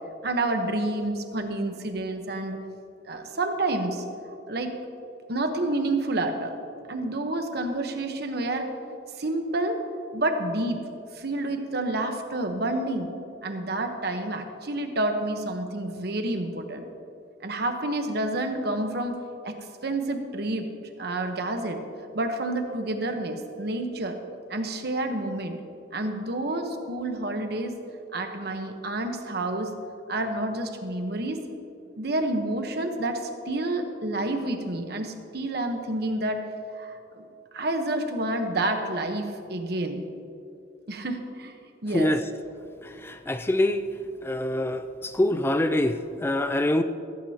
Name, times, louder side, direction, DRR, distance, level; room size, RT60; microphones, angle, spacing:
voice 1, 0.2-2.6 3.1-4.0 4.5-4.7 5.3-6.6 6.9-8.7 9.2-9.8 10.1-10.8 11.1-13.1 13.4-16.8 17.4-20.7 21.0-21.8 22.1-24.2 24.5-25.6 25.9-27.8 28.1-29.7 30.1-31.4 32.0-36.4 36.7-37.3 37.5-40.0 40.9-41.5 41.8-42.1, right 2 dB, 55° right, 5 dB, 1.1 m, -29 dB
voice 2, 42.8-43.9 44.2-46.8, left 1 dB, 10° left, 9 dB, 0.3 m, -25 dB
15.0 x 15.0 x 2.9 m, 2.7 s
head